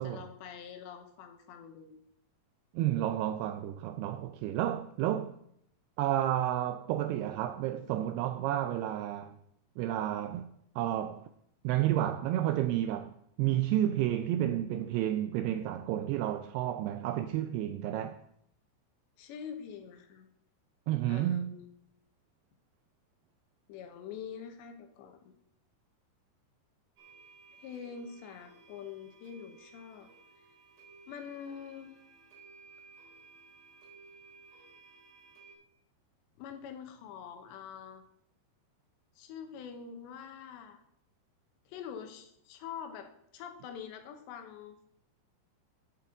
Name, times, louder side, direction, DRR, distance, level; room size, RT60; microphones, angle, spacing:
voice 1, 0.0-2.0 19.2-20.3 21.1-21.7 23.7-25.3 27.6-30.1 31.1-31.9 36.4-38.0 39.2-40.8 41.7-44.9, left 7 dB, 80° left, 3.2 m, -45 dB
voice 2, 2.7-5.3 6.0-9.4 9.8-11.3 11.6-13.1 13.4-18.2 20.9-21.6, right 12 dB, 85° right, 2.3 m, -31 dB
sound 1, 27.0-35.6, right 4 dB, 55° right, 5.5 m, -56 dB
14.5 x 8.2 x 3.8 m
omnidirectional pair, 5.2 m